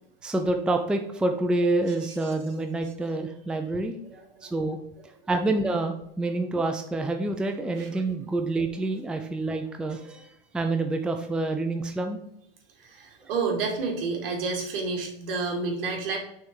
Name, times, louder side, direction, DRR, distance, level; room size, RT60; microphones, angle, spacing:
voice 1, 0.2-3.9 4.4-4.8 5.3-10.3 10.5-12.2, right 2 dB, 5° right, 5 dB, 0.4 m, -27 dB
voice 2, 4.0-4.5 7.8-7.9 12.8-16.2, right 4 dB, 75° right, 1 dB, 2.1 m, -30 dB
6.1 x 3.5 x 4.7 m, 0.76 s
supercardioid pair, 120°, 29 cm